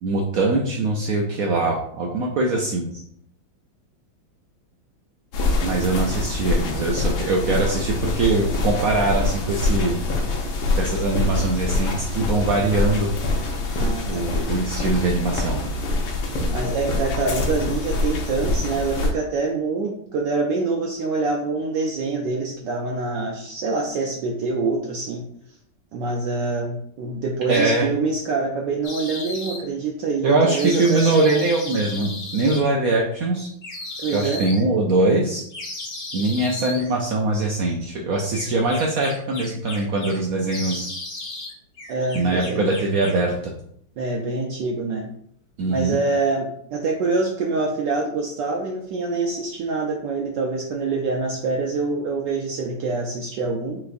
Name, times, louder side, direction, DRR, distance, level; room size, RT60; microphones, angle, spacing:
voice 1, 0.0-2.9 5.6-10.0 10.8-13.1 14.1-15.6 27.5-27.9 30.2-33.5 34.1-35.4 36.1-40.9 42.1-43.5 45.6-46.0, right 2 dB, 90° right, 0 dB, 0.7 m, -22 dB
sound 1, 5.3-19.1, left 2 dB, 85° left, 1.6 m, -25 dB
voice 2, 13.8-14.3 16.5-25.2 25.9-31.4 34.0-34.4 37.8-37.9 41.9-42.6 44.0-45.1 45.7-53.8, right 3 dB, 70° right, 0 dB, 1.1 m, -25 dB
sound 2, 28.8-29.6 30.5-32.6 33.6-34.6 35.5-36.8 38.3-40.2 40.5-41.5 41.8-43.2, left 2 dB, 40° left, 1.2 m, -35 dB
5.8 x 3.1 x 2.5 m, 0.68 s
omnidirectional pair, 2.2 m